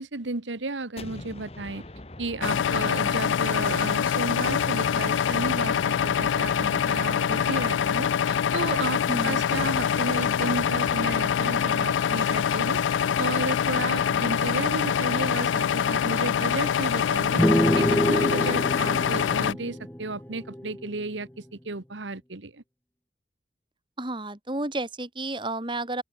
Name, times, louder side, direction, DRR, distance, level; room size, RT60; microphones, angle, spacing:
voice 1, 0.0-1.8 2.2-12.8 13.2-17.4 17.8-22.6, right 2 dB, 80° right, 1.5 m, -33 dB
sound 1, 1.0-4.0 4.4-8.7 9.5-11.7, left 1 dB, 35° left, 1.4 m, -43 dB
sound 2, 2.4-19.5, left 8 dB, 85° left, 0.4 m, -25 dB
voice 2, 9.1-9.4 24.0-26.0, right 2 dB, 25° right, 2.5 m, -31 dB
sound 3, 17.4-20.9, equal, 10° left, 0.8 m, -26 dB
open air
head